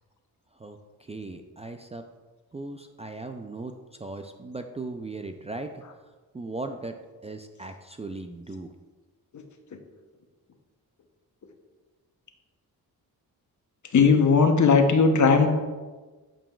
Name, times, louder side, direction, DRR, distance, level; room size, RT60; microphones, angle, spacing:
voice 1, 1.1-2.0 2.5-3.7 4.0-5.8 6.3-7.0 7.2-8.7, right 2 dB, 20° right, 6 dB, 0.4 m, -37 dB
voice 2, 13.9-15.5, left 5 dB, 50° left, 5 dB, 0.9 m, -18 dB
8.8 x 5.0 x 2.4 m, 1.3 s
cardioid pair, 65°, 38 cm